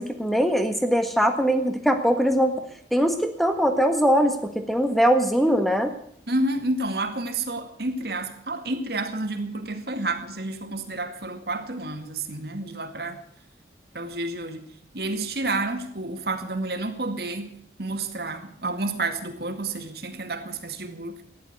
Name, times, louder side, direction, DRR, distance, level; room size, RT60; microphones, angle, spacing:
voice 1, 0.0-2.5 2.9-5.9, equal, ahead, 7 dB, 1.6 m, -21 dB
voice 2, 6.3-13.2 13.9-14.7 14.9-21.2, right 2 dB, 60° right, 6 dB, 2.1 m, -30 dB
15.0 x 11.0 x 8.0 m, 0.67 s
head